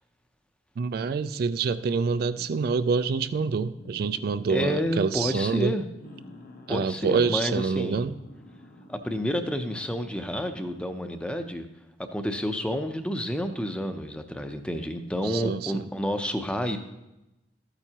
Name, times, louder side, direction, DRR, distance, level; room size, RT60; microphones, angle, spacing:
voice 1, 0.8-5.8 6.7-8.1 15.2-15.9, right 5 dB, 55° right, 12 dB, 0.3 m, -26 dB
sound 1, 1.0-1.4 2.3-3.2 3.8-5.0 5.7-6.8 7.8-9.0 10.0-11.0 12.8-12.9, left 1 dB, 55° left, 0.9 m, -49 dB
voice 2, 4.5-5.9 6.7-8.1 8.9-11.7 12.1-16.8, equal, 5° left, 7 dB, 0.6 m, -29 dB
12.5 x 9.0 x 2.9 m, 0.94 s
head